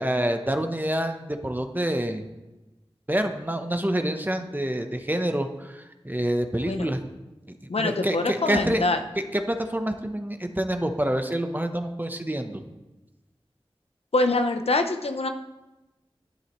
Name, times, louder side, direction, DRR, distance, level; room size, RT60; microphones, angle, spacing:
voice 1, 0.0-2.2 3.1-7.0 7.6-8.8 9.3-12.6, right 1 dB, 20° right, 6 dB, 0.9 m, -27 dB
voice 2, 7.7-9.0 14.1-15.3, left 2 dB, 85° left, 7 dB, 0.7 m, -24 dB
11.0 x 10.0 x 3.1 m, 1.0 s
wide cardioid pair, 45°, 10 cm